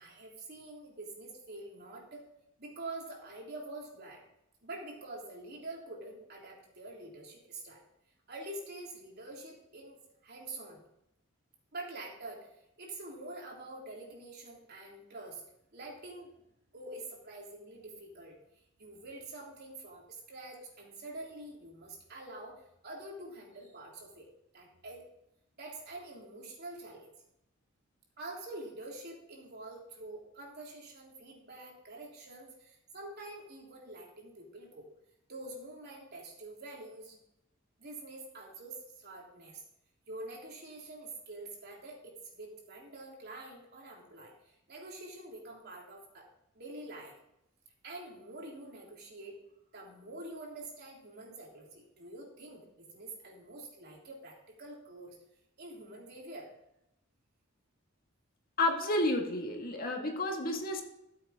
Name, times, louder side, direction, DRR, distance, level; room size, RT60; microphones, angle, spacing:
voice 1, 0.0-2.3 2.6-4.2 4.6-7.8 8.3-10.0 10.2-10.8 11.7-12.5 12.8-15.4 15.7-16.3 16.7-18.4 18.8-24.3 24.5-25.0 25.6-27.1 28.2-34.9 35.3-37.2 37.8-39.6 40.1-47.2 47.8-49.4 49.7-55.2 55.6-56.5, right 2 dB, 50° right, -2 dB, 3.5 m, -46 dB
voice 2, 58.6-60.8, left 2 dB, 45° left, 2 dB, 1.9 m, -31 dB
14.5 x 7.7 x 3.7 m, 0.83 s
head